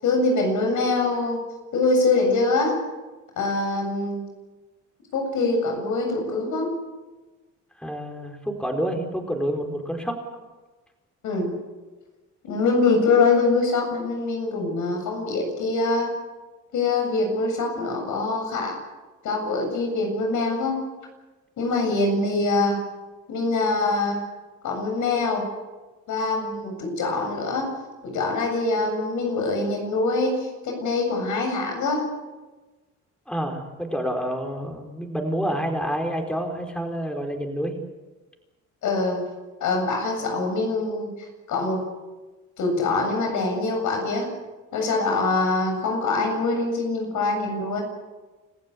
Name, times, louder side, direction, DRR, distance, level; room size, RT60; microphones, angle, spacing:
voice 1, 0.0-1.4 1.7-2.8 3.4-4.2 5.1-6.8 11.2-11.5 12.4-16.1 16.7-18.7 19.2-20.8 21.6-22.8 23.3-24.2 24.6-25.4 26.1-27.7 28.0-32.1 38.8-39.2 39.6-41.1 41.5-41.8 42.6-44.3 44.7-47.8, left 3 dB, 75° left, 3 dB, 7.7 m, -24 dB
voice 2, 7.8-10.2 33.3-37.7, equal, 5° left, 3 dB, 4.3 m, -28 dB
29.0 x 15.0 x 8.5 m, 1.2 s
cardioid pair, 90°, 30 cm